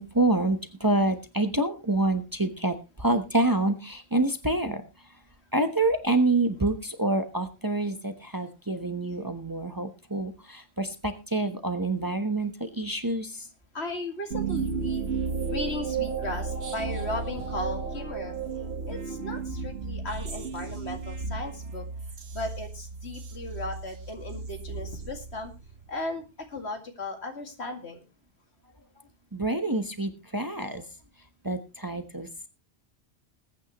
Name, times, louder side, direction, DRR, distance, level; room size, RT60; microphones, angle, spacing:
voice 1, 0.0-4.8 5.5-13.5 29.3-30.8 31.4-32.5, right 2 dB, 20° right, 7 dB, 1.1 m, -27 dB
voice 2, 13.7-15.2 15.5-18.3 18.9-21.8 22.3-25.5 25.9-28.0, left 2 dB, 65° left, 4 dB, 2.5 m, -36 dB
sound 1, 14.3-25.9, right 5 dB, 65° right, 1.6 m, -33 dB
20.5 x 9.4 x 3.1 m, 0.27 s
omnidirectional pair, 1.2 m